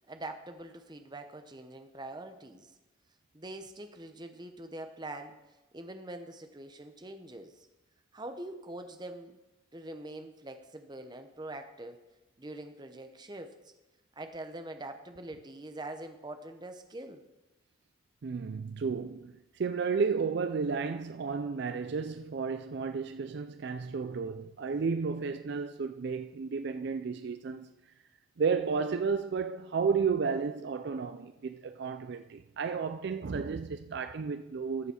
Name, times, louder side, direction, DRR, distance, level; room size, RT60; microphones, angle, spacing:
voice 1, 0.1-2.7 3.3-5.4 5.7-7.5 8.1-9.4 9.7-12.0 12.4-13.5 14.2-17.2, right 1 dB, 20° right, 0.7 m, -44 dB
voice 2, 18.2-27.7 28.4-34.9, right 5 dB, 55° right, 0.4 m, -32 dB
13.5 x 7.0 x 4.3 m
head